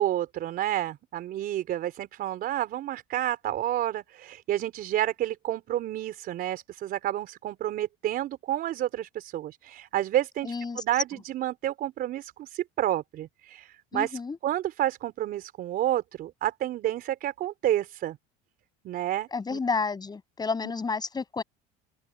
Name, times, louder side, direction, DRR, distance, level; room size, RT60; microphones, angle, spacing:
voice 1, 0.0-18.2 18.8-19.6, right 13 dB, 50° right, 4.2 m, -30 dB
voice 2, 10.4-10.8 13.9-14.4 19.3-21.4, left 4 dB, 20° left, 7.9 m, -30 dB
supercardioid pair, 105°, 19 cm